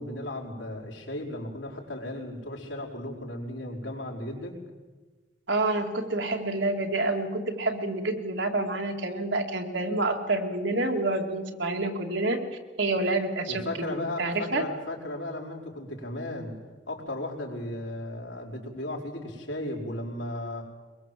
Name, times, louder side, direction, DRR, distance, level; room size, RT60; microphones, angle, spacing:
voice 1, 0.0-4.6 13.5-16.5 16.9-20.6, left 1 dB, 80° left, 0 dB, 5.0 m, -35 dB
voice 2, 5.5-12.4 12.8-14.6, right 2 dB, 75° right, 3 dB, 2.7 m, -28 dB
22.5 x 22.5 x 7.8 m, 1.3 s
head